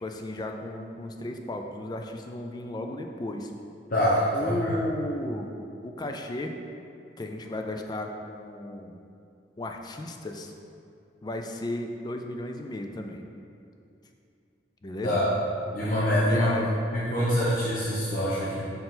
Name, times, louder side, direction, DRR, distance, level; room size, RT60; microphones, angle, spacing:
voice 1, 0.0-3.5 4.3-5.5 5.8-6.6 7.2-9.0 9.6-10.5 11.2-13.2 14.8-15.2 16.3-16.7, left 1 dB, 20° left, 4 dB, 0.3 m, -34 dB
voice 2, 3.9-4.7 15.0-15.3 15.7-16.5 16.9-18.6, equal, 50° left, -8 dB, 0.8 m, -25 dB
5.3 x 4.6 x 3.8 m, 2.6 s
head